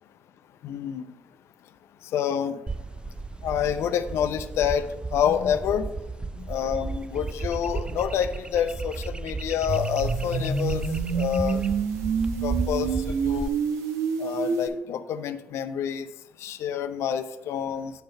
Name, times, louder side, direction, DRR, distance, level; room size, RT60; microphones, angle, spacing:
voice 1, 0.6-1.0 2.1-2.6 3.4-5.9 6.4-11.6 12.4-13.5 14.2-16.1 16.4-17.9, left 8 dB, 75° left, 10 dB, 0.5 m, -28 dB
sound 1, 2.7-13.5, right 3 dB, 20° right, 0.3 m, -34 dB
sound 2, 9.7-14.7, right 5 dB, 80° right, 1.0 m, -27 dB
9.1 x 3.8 x 5.2 m, 1.1 s
supercardioid pair, 55°, 5 cm